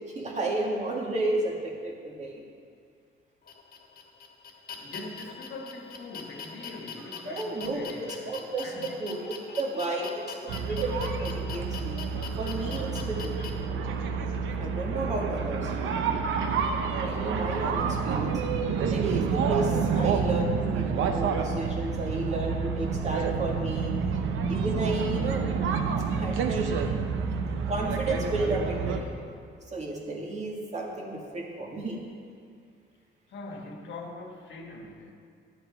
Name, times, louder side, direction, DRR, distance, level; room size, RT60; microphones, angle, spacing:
voice 1, 0.1-2.4 7.3-12.0 12.4-13.5 14.6-15.8 16.8-18.4 18.9-24.0 24.5-25.5 26.1-26.9 27.7-29.1 29.7-32.0, right 2 dB, 35° right, -2 dB, 2.1 m, -32 dB
sound 1, 3.5-13.5, left 6 dB, 50° left, 1.5 m, -42 dB
voice 2, 4.7-9.1 33.3-35.1, left 2 dB, 70° left, 2 dB, 1.4 m, -42 dB
sound 2, 10.5-29.0, right 5 dB, 85° right, 0.8 m, -28 dB
10.5 x 7.7 x 4.8 m, 2.2 s
cardioid pair, 90°, 20 cm